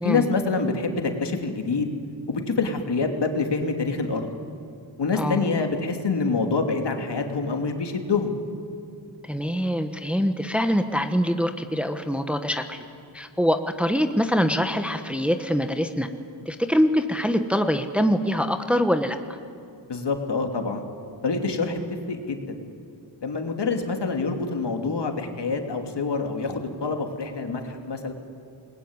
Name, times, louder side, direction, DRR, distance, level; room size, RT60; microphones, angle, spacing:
voice 1, 0.0-1.9 2.3-4.3 5.0-8.3 19.9-20.8 21.2-21.8 22.1-22.6 23.2-28.1, left 4 dB, 60° left, 4 dB, 2.8 m, -26 dB
voice 2, 5.1-5.5 9.3-12.8 13.1-16.1 16.4-19.2, equal, 5° right, 7 dB, 1.2 m, -24 dB
28.0 x 21.0 x 9.7 m, 2.5 s
wide cardioid pair, 120°, 46 cm